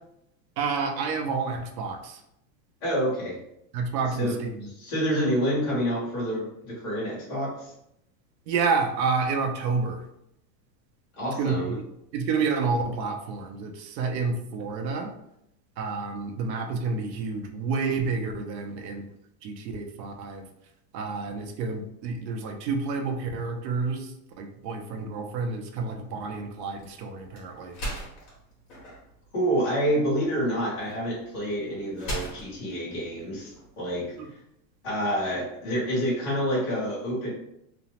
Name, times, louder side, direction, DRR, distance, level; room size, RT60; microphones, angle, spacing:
voice 1, 0.6-2.2 3.7-4.7 8.5-10.0 11.4-11.8 12.1-15.1 15.8-19.1 19.4-20.4 20.9-27.8 34.2-34.3, right 4 dB, 85° right, 3 dB, 0.7 m, -29 dB
voice 2, 2.8-3.4 4.2-4.4 4.8-7.7 11.2-11.8 29.3-34.0 34.8-37.3, equal, 20° left, -9 dB, 0.4 m, -28 dB
sound 1, 26.6-34.1, right 1 dB, 35° left, 1.3 m, -41 dB
2.9 x 2.0 x 2.9 m, 0.78 s
supercardioid pair, 180°, 49 cm